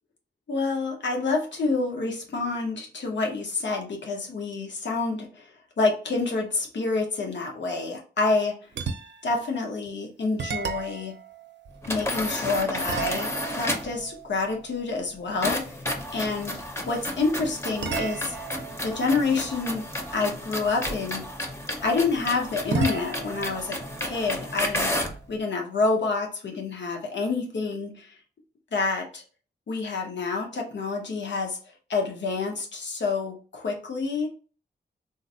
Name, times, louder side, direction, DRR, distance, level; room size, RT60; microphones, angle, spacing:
voice 1, 0.5-5.5 5.8-8.6 9.2-11.2 11.9-15.8 16.1-16.6 16.9-18.3 18.8-21.2 21.8-25.0 25.3-28.1 28.7-29.2 29.7-31.6 31.9-34.3, left 3 dB, 85° left, 1 dB, 0.8 m, -28 dB
sound 1, 8.7-9.4 9.9-10.0 10.4-12.3 12.9-15.5 17.8-20.5 22.7-25.3, right 5 dB, 80° right, 0.5 m, -36 dB
sound 2, 11.8-14.0 15.4-25.2, left 1 dB, 15° left, 0.5 m, -32 dB
3.9 x 2.0 x 2.6 m, 0.38 s
wide cardioid pair, 115°, 18 cm